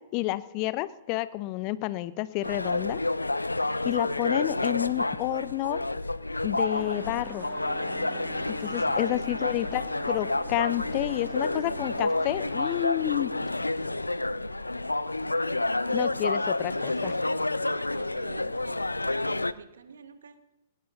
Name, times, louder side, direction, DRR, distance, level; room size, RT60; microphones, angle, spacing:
voice 1, 0.1-3.0 3.8-5.8 6.4-7.5 8.6-13.3 15.9-17.1, left 17 dB, 35° left, 17 dB, 0.6 m, -30 dB
sound 1, 2.4-19.5, left 2 dB, 80° left, 0.4 m, -29 dB
sound 2, 6.7-12.6, right 12 dB, 25° right, 0.5 m, -48 dB
voice 2, 9.1-9.8 16.5-20.4, right 6 dB, 65° right, 11 dB, 1.2 m, -48 dB
19.0 x 19.0 x 2.7 m, 1.0 s
figure-of-eight pair, 110°, 0 cm